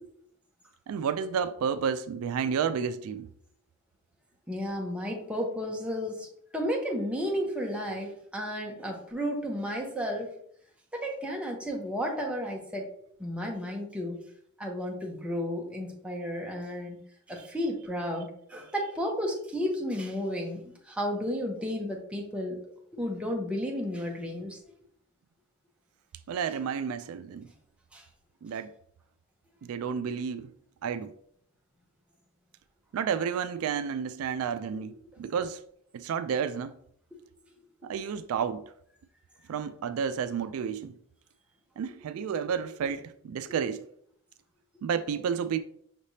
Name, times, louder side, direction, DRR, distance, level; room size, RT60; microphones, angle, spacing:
voice 1, 0.9-3.3 26.3-27.5 28.4-28.7 29.6-30.5 30.8-31.1 32.9-35.6 35.9-36.8 37.8-38.6 39.5-41.0 41.8-43.9 44.8-45.6, right 7 dB, 80° right, 0.3 m, -31 dB
voice 2, 4.5-6.3 6.5-10.3 10.9-12.9 13.2-14.2 14.6-17.0 17.3-22.6 22.9-24.6 27.9-28.0, equal, 5° right, 0.8 m, -33 dB
5.8 x 3.3 x 2.7 m
head